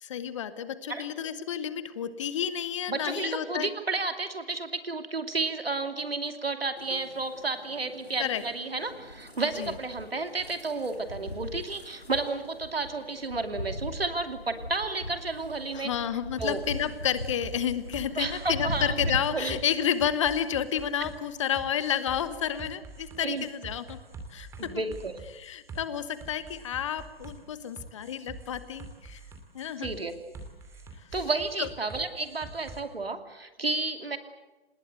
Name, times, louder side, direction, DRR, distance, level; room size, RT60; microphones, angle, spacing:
voice 1, 0.0-3.7 8.2-8.4 9.6-9.7 15.7-24.0 24.3-24.5 25.3-29.2 29.5-29.9 31.6-31.7, left 9 dB, 30° left, 14 dB, 1.2 m, -30 dB
voice 2, 2.9-15.9 16.4-16.6 18.2-19.0 19.3-19.6 23.2-23.4 24.6-25.2 29.8-30.1 31.1-34.2, right 3 dB, 70° right, 7 dB, 2.8 m, -32 dB
sound 1, 6.8-19.2, left 1 dB, 90° left, 3.1 m, -40 dB
sound 2, 16.4-32.8, right 3 dB, 10° right, 2.5 m, -45 dB
27.0 x 20.0 x 8.1 m, 1.1 s
figure-of-eight pair, 135°, 30 cm